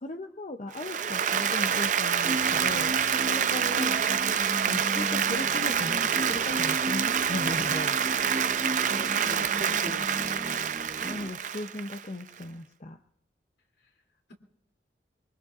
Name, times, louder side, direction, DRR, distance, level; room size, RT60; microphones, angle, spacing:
voice 1, 0.0-4.0 4.7-8.0 11.0-13.0, left 2 dB, 40° left, 6 dB, 0.6 m, -37 dB
Applause, 0.7-12.4, right 8 dB, 45° right, 0.5 m, -27 dB
sound 1, 2.2-11.3, right 1 dB, 25° right, 0.9 m, -36 dB
voice 2, 8.9-10.8, equal, 75° left, 1 dB, 2.8 m, -41 dB
24.0 x 23.5 x 2.5 m, 0.86 s
head